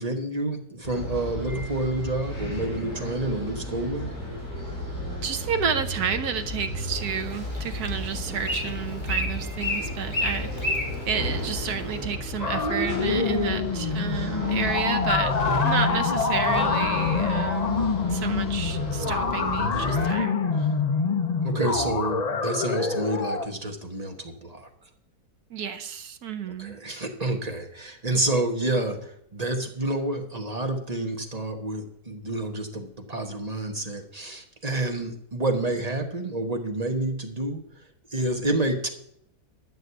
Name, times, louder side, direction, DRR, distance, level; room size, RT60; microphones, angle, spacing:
voice 1, 0.0-4.1 21.4-24.7 26.6-37.6 38.1-38.9, right 2 dB, 25° right, 3 dB, 1.3 m, -29 dB
sound 1, 0.8-20.1, left 1 dB, 65° left, 6.7 m, -34 dB
voice 2, 5.2-10.8 11.0-15.3 15.6-17.8 18.1-20.7 25.5-26.8, right 7 dB, 70° right, 9 dB, 1.3 m, -31 dB
Bird, 6.9-12.1, left 1 dB, 15° left, 1.7 m, -33 dB
sound 2, 12.4-23.5, left 5 dB, 40° left, 0.5 m, -25 dB
12.0 x 6.4 x 8.1 m, 0.71 s
omnidirectional pair, 1.8 m